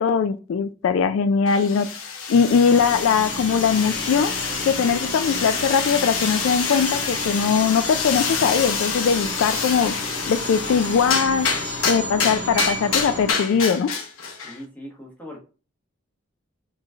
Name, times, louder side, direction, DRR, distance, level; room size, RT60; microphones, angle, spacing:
voice 1, 0.0-1.9 2.3-4.3 4.7-10.0 10.3-11.5 11.9-13.9, left 6 dB, 75° left, 0.3 m, -20 dB
sound 1, 1.5-14.6, left 5 dB, 90° left, 0.9 m, -27 dB
sound 2, 2.7-13.3, right 1 dB, 65° right, 1.0 m, -33 dB
voice 2, 14.4-15.4, equal, 10° left, 1.2 m, -39 dB
4.9 x 3.1 x 2.4 m
head